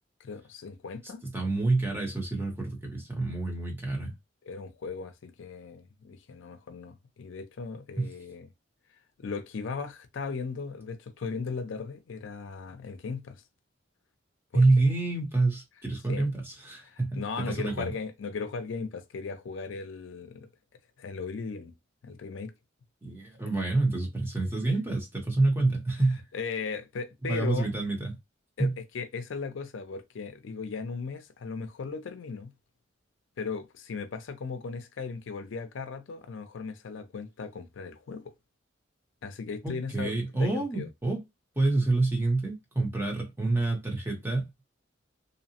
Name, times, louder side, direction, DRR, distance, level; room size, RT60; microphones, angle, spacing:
voice 1, 0.2-1.2 4.5-8.5 9.2-13.4 14.5-14.6 16.1-16.3 16.9-20.5 21.0-21.7 22.0-22.5 26.3-27.7 28.6-28.7 28.9-32.5 33.4-38.3 39.2-40.9, left 5 dB, 80° left, 0.4 m, -37 dB
voice 2, 1.3-4.1 8.0-8.1 14.5-17.9 23.0-26.2 27.3-28.1 28.6-28.7 39.6-41.2 41.6-44.6, right 2 dB, 10° right, 0.8 m, -27 dB
2.7 x 2.0 x 2.8 m
head